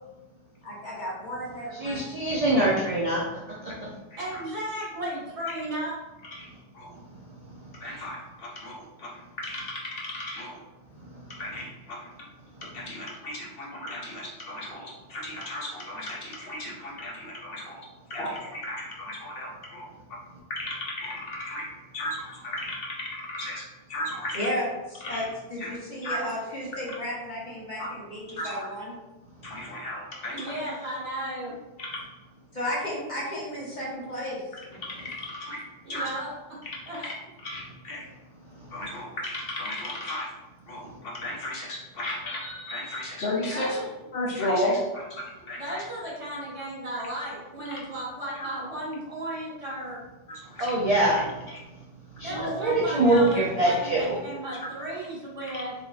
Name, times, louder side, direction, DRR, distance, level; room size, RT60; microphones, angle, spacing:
voice 1, 0.6-2.0 2.3-2.4 24.3-24.6 24.9-25.2 25.5-28.9 32.6-34.4 34.7-34.8, equal, 40° left, -6 dB, 1.1 m, -33 dB
voice 2, 1.7-3.3 3.6-3.9 50.6-51.3 52.2-54.2, right 1 dB, 45° right, -4 dB, 0.5 m, -24 dB
voice 3, 4.2-5.9 30.3-31.5 35.8-36.3 36.9-37.1 43.5-43.9 45.6-50.0 52.2-55.7, right 1 dB, 65° right, -7 dB, 1.7 m, -34 dB
voice 4, 7.7-10.6 11.4-12.3 12.6-20.2 20.5-21.7 21.9-23.6 23.9-24.5 25.0-25.3 25.6-25.7 26.0-26.3 27.8-27.9 28.4-28.7 29.4-30.6 31.8-31.9 34.8-35.6 35.9-36.1 36.6-36.8 37.0-37.1 37.4-38.0 38.7-40.3 40.7-43.8 44.1-45.8 47.7-47.8 48.4-48.5 50.3-50.7 51.5-51.6 55.5-55.6, left 1 dB, 60° left, -2 dB, 0.8 m, -34 dB
4.1 x 2.9 x 2.3 m, 1.1 s
omnidirectional pair, 1.2 m